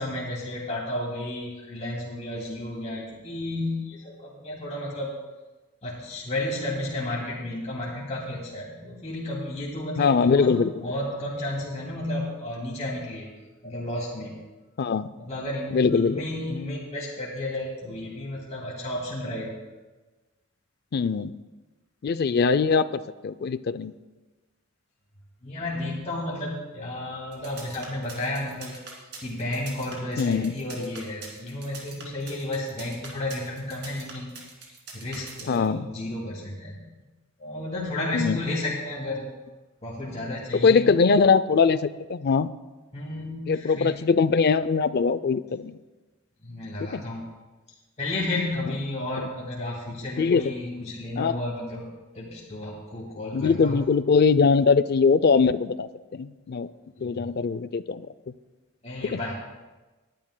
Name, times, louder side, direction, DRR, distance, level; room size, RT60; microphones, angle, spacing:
voice 1, 0.0-5.1 5.8-13.3 13.6-14.3 15.2-19.5 25.4-28.8 29.2-34.3 34.9-36.8 37.4-39.3 39.8-40.9 42.9-44.0 46.4-47.2 48.0-51.8 52.1-53.9 57.0-57.3 58.8-59.4, left 1 dB, 30° left, -5 dB, 2.4 m, -32 dB
voice 2, 10.0-10.8 14.8-15.1 15.7-16.2 20.9-21.3 22.0-23.9 30.2-30.5 35.5-35.9 38.1-38.4 40.6-42.5 43.5-45.8 46.9-47.0 50.2-50.5 51.2-51.4 53.3-56.7 57.0-58.1, left 5 dB, 45° left, 15 dB, 0.4 m, -22 dB
sound 1, 27.3-35.7, right 4 dB, 50° right, 2.7 m, -43 dB
20.5 x 10.5 x 2.2 m, 1.2 s
head